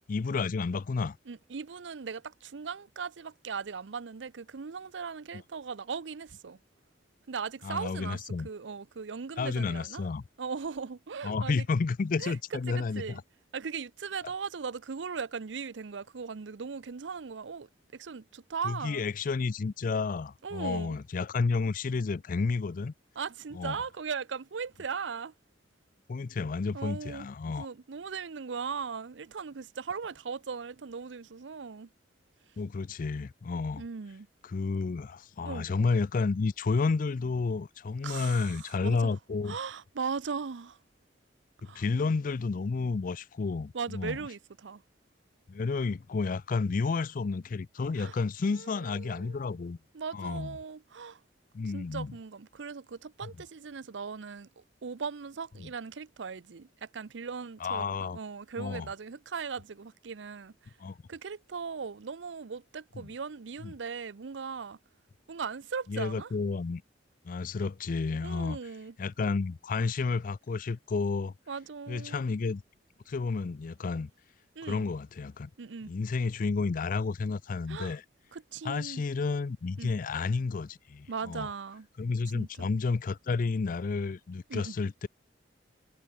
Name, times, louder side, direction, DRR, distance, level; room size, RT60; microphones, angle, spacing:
voice 1, 0.1-1.2 7.6-8.5 9.4-10.2 11.2-13.2 18.6-22.9 23.5-23.8 26.1-27.7 32.6-33.8 34.4-39.6 41.6-44.2 45.5-49.8 50.1-50.6 51.5-52.1 53.2-53.3 55.6-55.7 57.6-58.2 58.6-58.9 60.8-61.0 63.6-63.7 65.9-66.8 67.2-68.6 69.0-71.3 71.9-72.6 73.1-74.1 74.6-75.5 75.8-78.0 78.6-81.5 82.0-85.1, left 4 dB, 50° left, 0.4 m, -31 dB
voice 2, 1.3-6.6 7.3-10.0 10.4-11.6 12.2-12.4 12.7-13.2 13.5-19.0 20.4-21.0 23.2-25.3 26.7-27.3 27.6-31.9 33.8-34.3 35.4-35.7 38.0-39.2 39.4-40.8 41.6-41.8 43.7-44.8 48.0-48.2 48.5-49.4 49.9-51.2 51.6-60.7 61.1-64.8 65.3-66.3 68.2-68.9 71.5-72.2 74.6-74.8 75.6-75.9 77.7-78.0 78.3-79.0 79.8-79.9 81.1-81.9 82.3-82.7 84.5-84.8, right 5 dB, 90° right, 0.6 m, -38 dB
head